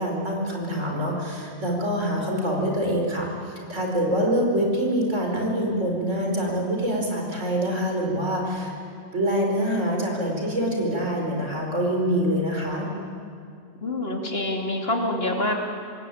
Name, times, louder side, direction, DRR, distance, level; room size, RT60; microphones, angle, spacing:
voice 1, 0.0-8.7 9.1-12.9, equal, 75° right, 0 dB, 5.1 m, -25 dB
voice 2, 13.8-15.5, left 1 dB, 50° left, 1 dB, 3.0 m, -26 dB
25.5 x 20.0 x 9.3 m, 2.3 s
omnidirectional pair, 1.3 m